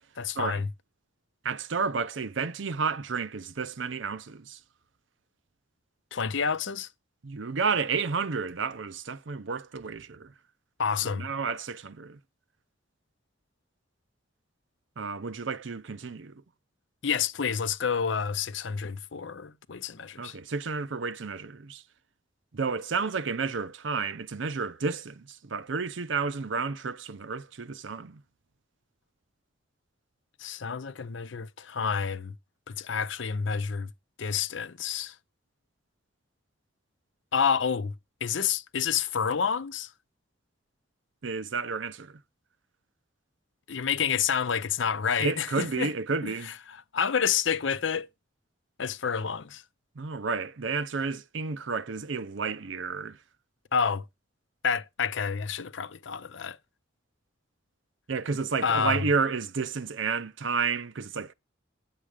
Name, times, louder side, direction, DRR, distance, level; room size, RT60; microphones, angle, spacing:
voice 1, 0.2-0.7 6.1-6.9 10.8-11.3 17.0-20.4 30.4-32.3 32.7-33.9 34.2-35.1 37.3-37.9 38.2-39.9 43.7-45.9 46.2-48.1 48.8-49.6 53.7-54.0 54.6-56.6 58.6-59.0, left 6 dB, 70° left, 0.6 m, -29 dB
voice 2, 1.4-4.6 7.2-10.3 11.1-12.2 15.0-16.4 20.2-21.8 22.5-28.2 41.2-42.2 45.2-46.5 50.0-53.2 58.1-61.3, right 5 dB, 70° right, 0.6 m, -31 dB
9.6 x 7.5 x 4.9 m
head